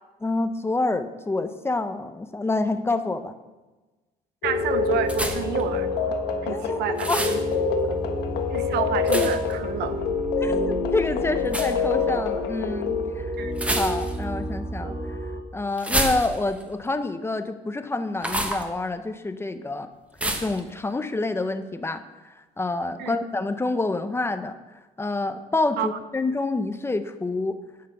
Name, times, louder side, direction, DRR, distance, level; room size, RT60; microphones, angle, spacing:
voice 1, 0.2-3.3 6.5-7.2 7.8-8.0 9.1-9.3 10.4-13.3 13.7-15.2 15.5-19.9 20.4-22.0 22.6-24.5 25.0-27.6, left 2 dB, 15° left, 9 dB, 0.7 m, -27 dB
sound 1, 4.4-13.1, left 6 dB, 80° left, 1.2 m, -27 dB
sound 2, 4.4-15.4, right 1 dB, 25° right, 1.5 m, -32 dB
voice 2, 4.4-6.1 6.4-7.4 8.5-9.9 13.4-13.5 23.0-23.2 25.8-25.9, right 9 dB, 75° right, 11 dB, 0.8 m, -29 dB
sound 3, 5.1-5.6 7.0-7.4 9.1-9.5 11.5-11.7 13.5-14.3 15.8-16.6 18.2-18.6 20.2-20.6, right 1 dB, 5° right, 1.3 m, -27 dB
11.0 x 6.7 x 5.4 m, 1.2 s
cardioid pair, 110°, 17 cm